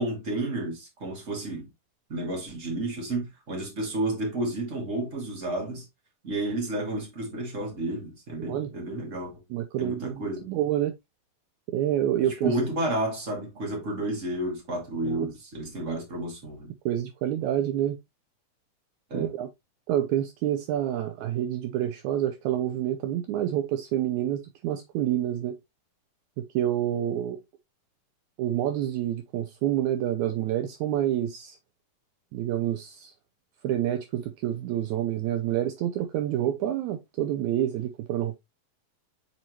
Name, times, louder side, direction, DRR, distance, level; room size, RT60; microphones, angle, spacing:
voice 1, 0.0-1.7 2.1-5.8 6.2-9.3 9.8-10.5 12.4-16.7 19.1-19.3, right 1 dB, 25° right, 2.4 m, -31 dB
voice 2, 8.4-8.7 9.5-10.9 11.7-12.5 15.0-15.3 16.8-18.0 19.1-19.5 19.9-25.6 26.4-27.4 28.4-31.6 32.3-33.1 33.6-38.4, right 11 dB, 85° right, 1.7 m, -28 dB
7.3 x 4.3 x 3.0 m
omnidirectional pair, 4.1 m